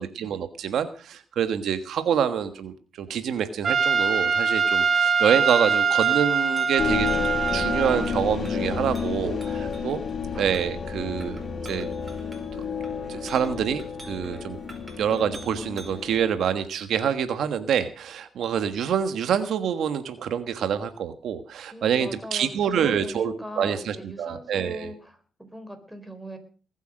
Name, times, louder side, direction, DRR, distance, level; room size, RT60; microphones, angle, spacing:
voice 1, 0.0-10.0 10.4-11.4 11.6-11.9 12.5-12.7 13.1-14.6 15.0-24.9, right 8 dB, 70° right, 9 dB, 1.5 m, -26 dB
Trumpet, 3.6-8.2, right 5 dB, 50° right, 1.8 m, -23 dB
Chink clink, 4.8-16.1, right 2 dB, 25° right, 5.0 m, -48 dB
sound 1, 6.8-16.5, left 6 dB, 45° left, 1.7 m, -31 dB
voice 2, 21.7-26.4, equal, ahead, 7 dB, 4.1 m, -39 dB
20.0 x 8.2 x 6.5 m, 0.40 s
cardioid pair, 90°, 0 cm